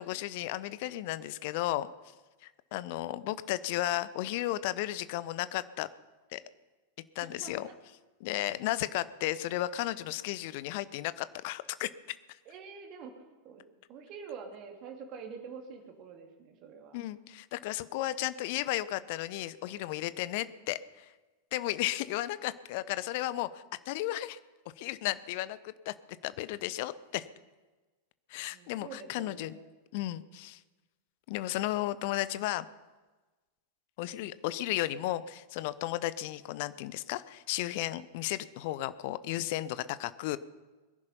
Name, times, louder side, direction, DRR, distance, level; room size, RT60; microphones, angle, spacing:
voice 1, 0.0-1.9 2.4-5.9 6.3-6.4 7.1-7.7 8.2-12.2 16.9-21.1 21.5-24.4 24.8-25.9 26.2-27.2 28.3-29.5 29.9-30.6 31.3-32.7 34.0-40.4, left 15 dB, 50° left, 16 dB, 0.8 m, -34 dB
voice 2, 7.2-7.7 12.4-13.6 13.9-17.0 28.4-29.6, right 6 dB, 40° right, 3 dB, 3.0 m, -46 dB
22.0 x 11.0 x 5.6 m, 1.2 s
figure-of-eight pair, 90°, 0 cm